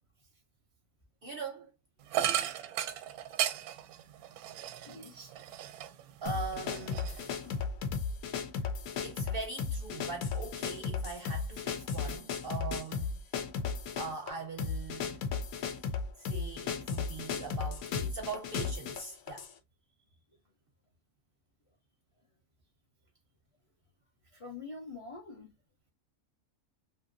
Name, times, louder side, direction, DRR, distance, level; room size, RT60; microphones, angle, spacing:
voice 1, 1.2-1.7 6.2-7.1 8.6-8.7 9.0-13.1 14.0-15.2 16.2-19.5, right 4 dB, 60° right, 0.6 m, -41 dB
sound 1, 2.1-6.1 6.5-7.6, right 11 dB, 85° right, 1.0 m, -35 dB
voice 2, 4.8-5.3 7.7-9.0 20.3-20.4 24.3-25.5, left 3 dB, 60° left, 0.3 m, -48 dB
jungle drum loop, 6.3-19.5, left 5 dB, 85° left, 1.1 m, -35 dB
2.8 x 2.7 x 2.5 m
omnidirectional pair, 1.5 m